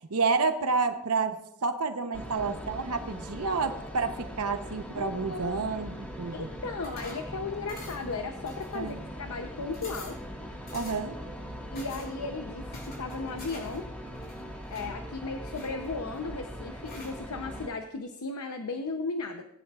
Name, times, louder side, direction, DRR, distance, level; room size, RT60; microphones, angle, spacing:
voice 1, 0.1-6.5 8.7-9.0 10.7-11.2, right 4 dB, 80° right, 8 dB, 0.9 m, -29 dB
sound 1, 2.1-17.7, equal, 5° left, 1.8 m, -41 dB
voice 2, 5.0-5.6 6.3-10.2 11.7-13.9 14.7-19.4, left 3 dB, 75° left, 6 dB, 0.8 m, -36 dB
sound 2, 6.8-7.3 7.7-8.1 8.5-9.1 9.4-9.5 9.7-10.2 10.7-11.1 11.7-12.1 12.7-13.8 14.1-14.9 15.5-16.2 16.8-17.2, left 2 dB, 45° left, 3.7 m, -47 dB
18.5 x 10.5 x 2.5 m, 0.83 s
head